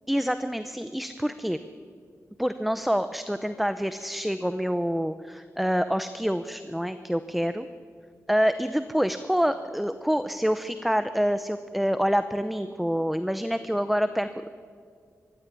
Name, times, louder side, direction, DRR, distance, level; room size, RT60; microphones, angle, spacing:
voice 1, 0.1-1.6 2.4-7.7 8.3-14.5, equal, ahead, 11 dB, 0.6 m, -27 dB
24.0 x 16.0 x 9.8 m, 2.2 s
wide cardioid pair, 170°, 6 cm